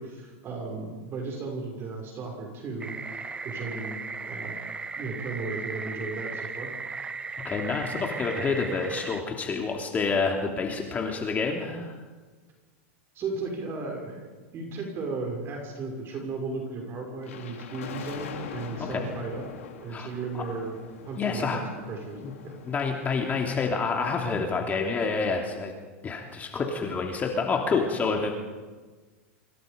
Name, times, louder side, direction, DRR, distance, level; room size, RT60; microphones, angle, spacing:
voice 1, 0.0-3.0 3.4-4.0 4.2-4.5 5.0-6.7 13.1-19.4 19.8-20.8 21.0-21.6 21.9-22.5, right 3 dB, 35° right, 1 dB, 6.2 m, -35 dB
sound 1, 2.8-9.2, right 4 dB, 15° right, 0.9 m, -36 dB
voice 2, 7.4-12.0 18.8-19.1 19.9-20.1 20.3-20.4 21.2-21.7 22.2-22.3 22.7-25.7 26.0-28.3, left 4 dB, 20° left, 2 dB, 3.1 m, -28 dB
sound 2, 17.2-24.1, left 7 dB, 90° left, 5.0 m, -43 dB
28.0 x 26.5 x 5.3 m, 1.3 s
supercardioid pair, 125°, 7 cm